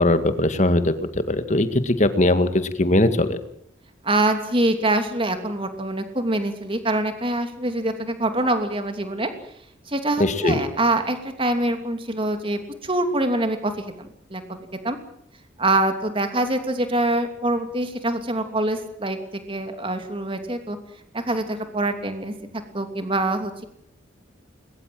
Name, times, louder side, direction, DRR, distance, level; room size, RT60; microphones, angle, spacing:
voice 1, 0.0-3.4 10.2-10.6, left 1 dB, 40° left, 10 dB, 2.0 m, -20 dB
voice 2, 4.0-9.3 9.9-14.6 14.8-15.0 15.6-19.2 19.5-20.8 21.1-22.3 22.7-23.5, right 1 dB, 30° right, 7 dB, 2.9 m, -24 dB
21.5 x 21.5 x 7.8 m, 0.70 s
head